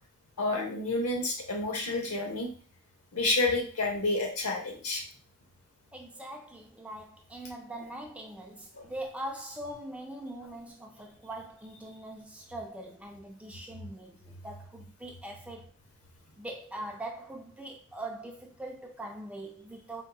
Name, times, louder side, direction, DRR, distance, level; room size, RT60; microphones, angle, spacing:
voice 1, 0.4-2.5 3.1-5.0 8.8-8.9, left 2 dB, 85° left, 0.9 m, -29 dB
voice 2, 5.9-15.7 16.4-20.0, right 1 dB, 5° right, 0.3 m, -42 dB
3.6 x 2.6 x 2.3 m
head